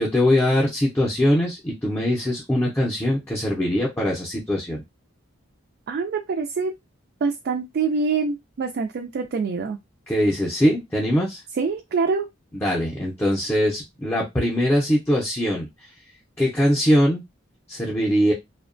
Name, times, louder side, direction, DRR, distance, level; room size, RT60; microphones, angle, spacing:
voice 1, 0.0-4.8 10.1-11.4 12.5-15.7 16.4-17.2 17.7-18.3, equal, 10° left, -4 dB, 0.5 m, -22 dB
voice 2, 5.9-6.7 7.2-9.8 11.6-12.3, right 4 dB, 55° right, 3 dB, 0.3 m, -25 dB
2.7 x 2.2 x 2.5 m, 0.19 s
head